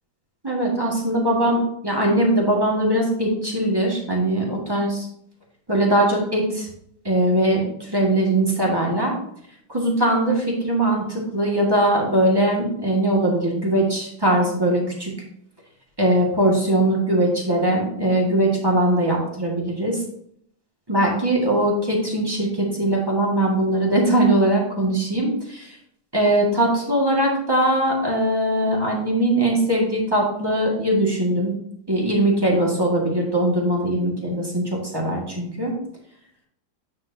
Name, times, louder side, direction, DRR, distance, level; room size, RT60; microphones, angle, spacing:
voice 1, 0.4-5.1 5.7-6.7 7.0-9.1 9.7-15.1 16.0-20.0 20.9-25.8 26.1-31.5 31.9-35.7, right 1 dB, 15° right, -2 dB, 1.8 m, -21 dB
9.4 x 6.2 x 2.8 m, 0.70 s
omnidirectional pair, 1.8 m